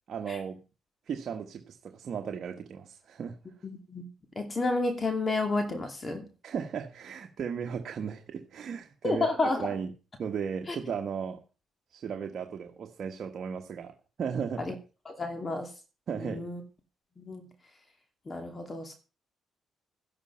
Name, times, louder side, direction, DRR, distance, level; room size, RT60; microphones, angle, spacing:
voice 1, 0.1-0.6 1.1-3.4 6.4-9.3 9.6-9.9 10.2-11.4 11.9-14.7 16.1-16.6, right 7 dB, 55° right, 1.4 m, -36 dB
voice 2, 4.4-6.2 9.0-9.7 10.7-10.8 14.6-14.7 15.1-15.7 16.2-16.6 17.2-17.5 18.3-18.9, left 2 dB, 30° left, 2.6 m, -30 dB
12.5 x 11.0 x 5.7 m
cardioid pair, 90°, 0 cm